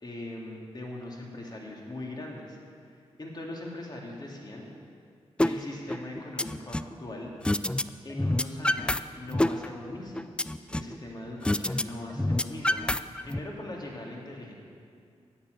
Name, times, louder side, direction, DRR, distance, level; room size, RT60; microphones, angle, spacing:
voice 1, 0.0-2.6 3.2-4.7 5.4-7.4 8.0-10.4 10.7-12.8 13.2-14.5, left 1 dB, 40° left, -2 dB, 2.5 m, -40 dB
sound 1, 5.4-5.5 5.9-6.9 7.4-7.8 8.1-9.0 9.3-11.0 11.4-11.8 12.1-13.4, left 1 dB, 10° left, 0.4 m, -26 dB
10.0 x 8.8 x 7.9 m, 2.3 s
cardioid pair, 65°, 11 cm